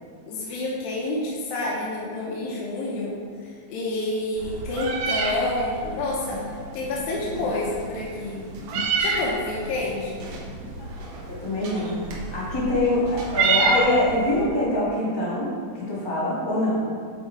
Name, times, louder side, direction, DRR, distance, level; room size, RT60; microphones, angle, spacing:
voice 1, 0.3-3.2 3.7-6.4 6.7-8.4 9.0-10.2, left 2 dB, 80° left, -5 dB, 2.7 m, -28 dB
Meow, 4.4-14.5, right 4 dB, 85° right, 2.8 m, -29 dB
sound 1, 6.3-14.2, left 1 dB, 65° right, 1.7 m, -42 dB
voice 2, 11.3-16.9, left 1 dB, 35° left, -8 dB, 0.4 m, -24 dB
8.0 x 4.3 x 4.5 m, 2.1 s
omnidirectional pair, 4.2 m